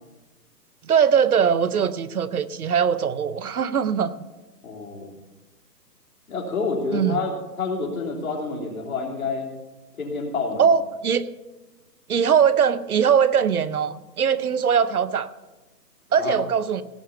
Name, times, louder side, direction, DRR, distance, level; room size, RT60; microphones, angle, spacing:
voice 1, 0.9-4.1 6.9-7.2 10.6-11.3 12.1-15.3 16.1-16.8, right 7 dB, 65° right, 15 dB, 0.8 m, -21 dB
voice 2, 4.6-5.2 6.3-9.5 10.0-10.6 16.2-16.4, left 4 dB, 55° left, 0 dB, 3.2 m, -28 dB
17.5 x 6.0 x 6.8 m, 1.1 s
hypercardioid pair, 165°, 49 cm